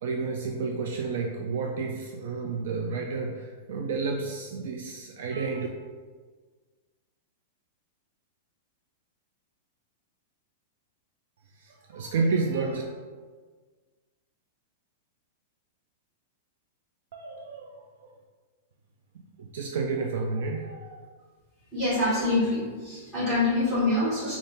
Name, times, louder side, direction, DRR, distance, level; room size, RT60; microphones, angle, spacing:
voice 1, 0.0-5.7 11.6-12.8 17.1-17.7 19.4-21.0, right 4 dB, 55° right, 1 dB, 0.3 m, -30 dB
voice 2, 21.7-24.4, left 2 dB, 20° right, -9 dB, 1.4 m, -25 dB
4.0 x 2.4 x 3.5 m, 1.5 s
supercardioid pair, 180°, 0 cm